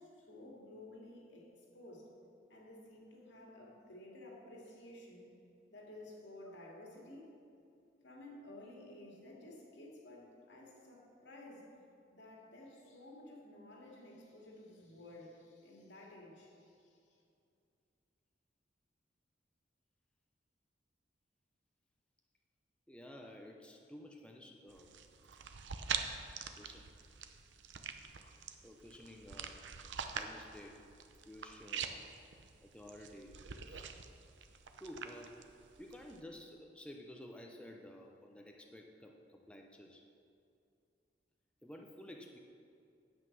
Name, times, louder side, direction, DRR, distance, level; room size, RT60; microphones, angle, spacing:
voice 1, 0.0-2.1 2.5-5.3 5.7-7.3 8.0-11.7 12.1-17.2, left 1 dB, 80° left, -2 dB, 2.4 m, -54 dB
voice 2, 22.9-24.9 26.6-26.8 28.6-29.6 30.1-30.8 31.3-32.0 32.6-33.4 33.7-33.8 34.8-35.4 35.8-40.0 41.6-42.4, left 1 dB, 5° left, 1 dB, 0.6 m, -52 dB
sound 1, 24.7-36.2, right 6 dB, 85° right, 0.7 m, -45 dB
9.5 x 8.0 x 6.1 m, 2.5 s
head